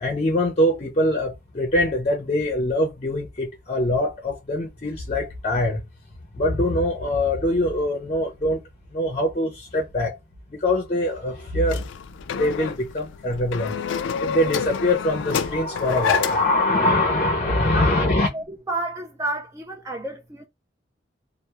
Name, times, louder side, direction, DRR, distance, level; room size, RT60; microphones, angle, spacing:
voice 1, 0.0-5.8 6.4-8.6 8.9-10.1 10.5-11.8 12.3-13.7 14.2-18.3, left 1 dB, 35° left, 0.5 m, -23 dB
sound 1, 11.7-16.6, left 7 dB, 90° left, 0.3 m, -28 dB
voice 2, 17.7-20.5, right 2 dB, 15° right, 0.3 m, -31 dB
2.2 x 2.0 x 2.8 m
head